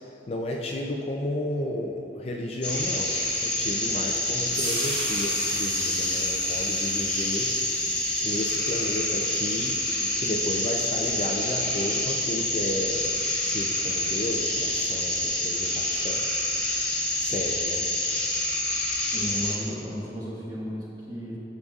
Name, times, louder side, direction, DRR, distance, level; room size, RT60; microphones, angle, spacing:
voice 1, 0.3-7.5 8.2-9.8 10.2-13.1 13.5-16.2 17.2-17.9, left 1 dB, 35° left, 0 dB, 0.4 m, -32 dB
sound 1, 2.6-19.5, left 1 dB, 5° left, 1.5 m, -27 dB
sound 2, 3.0-11.3, right 2 dB, 55° right, 1.3 m, -41 dB
voice 2, 19.1-21.4, equal, 20° right, -6 dB, 1.6 m, -34 dB
12.0 x 6.5 x 2.4 m, 2.7 s
head